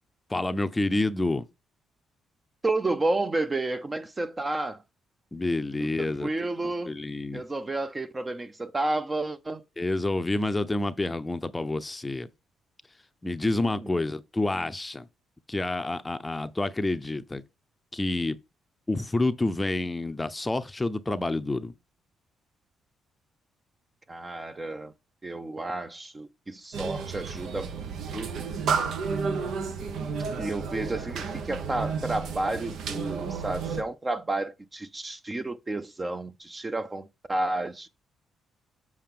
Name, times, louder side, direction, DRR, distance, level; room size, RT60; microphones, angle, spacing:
voice 1, 0.3-1.5 5.3-6.3 6.6-7.4 9.8-12.3 13.2-15.1 15.5-17.4 17.9-18.4 18.9-21.7, left 2 dB, 15° left, 0.6 m, -28 dB
voice 2, 2.6-4.8 5.8-6.9 7.3-9.6 13.6-14.0 24.1-24.9 25.2-28.3 30.4-37.9, right 2 dB, 25° right, 0.6 m, -31 dB
sound 1, 26.7-33.8, right 5 dB, 75° right, 0.9 m, -32 dB
7.4 x 4.7 x 3.7 m
cardioid pair, 90°, 0 cm